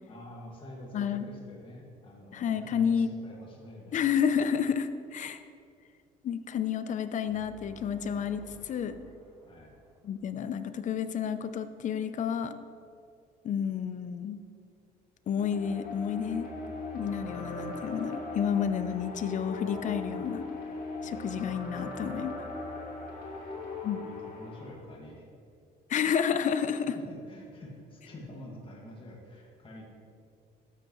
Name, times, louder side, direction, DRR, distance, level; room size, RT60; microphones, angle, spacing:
voice 1, 0.1-4.0 9.4-9.7 21.0-21.2 24.0-25.3 26.9-29.8, left 1 dB, 30° left, -2 dB, 1.9 m, -47 dB
voice 2, 0.9-1.2 2.3-3.1 3.9-5.4 6.2-8.9 10.0-12.6 13.4-14.4 15.3-16.5 16.9-20.5 21.0-22.3 23.8-24.0 25.9-27.0, left 7 dB, 50° left, 11 dB, 0.6 m, -30 dB
sound 1, 7.2-11.0, left 2 dB, 5° left, 2.3 m, -55 dB
sound 2, 15.4-24.7, left 2 dB, 65° left, 2.5 m, -39 dB
12.5 x 7.8 x 3.1 m, 2.3 s
cardioid pair, 110°, 17 cm